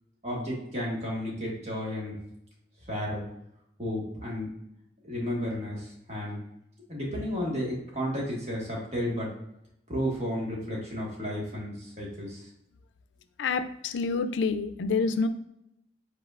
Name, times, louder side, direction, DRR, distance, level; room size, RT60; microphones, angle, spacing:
voice 1, 0.2-2.1 2.9-3.2 3.8-4.5 5.0-6.4 6.9-9.3 9.9-12.4, equal, 35° right, -4 dB, 1.6 m, -32 dB
voice 2, 13.4-15.3, left 4 dB, 90° left, 10 dB, 0.4 m, -27 dB
5.1 x 4.1 x 2.5 m, 0.80 s
head